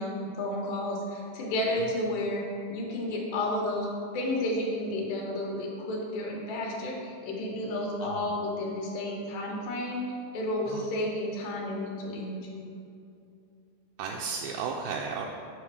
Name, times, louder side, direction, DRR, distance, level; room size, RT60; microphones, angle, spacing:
voice 1, 0.0-2.4 2.7-3.9 4.1-12.7, left 1 dB, 75° left, -2 dB, 3.2 m, -32 dB
voice 2, 8.0-8.4 10.7-10.8 14.0-15.3, right 5 dB, 85° right, 0 dB, 2.4 m, -34 dB
9.6 x 5.6 x 4.8 m, 2.5 s
omnidirectional pair, 5.3 m